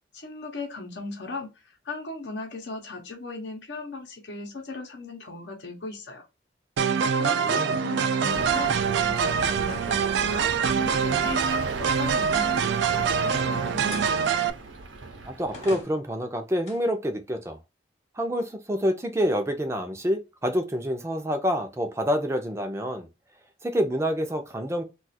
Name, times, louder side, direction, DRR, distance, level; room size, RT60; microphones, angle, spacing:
voice 1, 0.1-6.3 7.0-14.0, left 3 dB, 70° left, 0.8 m, -38 dB
sound 1, 6.8-14.5, right 6 dB, 70° right, 0.3 m, -24 dB
voice 2, 7.4-7.8 15.3-17.6 18.2-23.1 23.6-24.8, equal, 15° right, 0.5 m, -27 dB
sound 2, 8.3-15.8, right 3 dB, 85° right, 0.7 m, -37 dB
sound 3, 9.4-12.5 13.9-14.2 14.9-15.0 15.5-16.9, left 2 dB, 35° left, 0.9 m, -46 dB
2.4 x 2.4 x 4.1 m
head